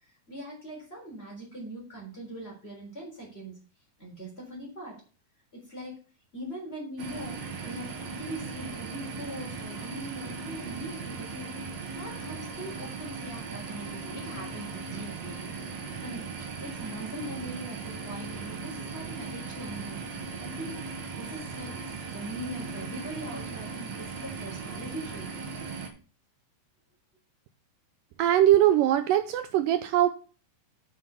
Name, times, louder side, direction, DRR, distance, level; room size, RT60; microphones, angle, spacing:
voice 1, 0.0-3.6 4.0-5.0 5.5-5.9 6.3-11.5 12.0-20.0 20.4-21.8 22.1-25.3, right 1 dB, 15° left, -1 dB, 3.5 m, -41 dB
sound 1, 7.0-25.9, right 4 dB, 55° right, 2.5 m, -38 dB
voice 2, 28.2-30.1, right 12 dB, 80° right, 10 dB, 1.9 m, -21 dB
8.2 x 7.1 x 5.5 m, 0.37 s
omnidirectional pair, 4.3 m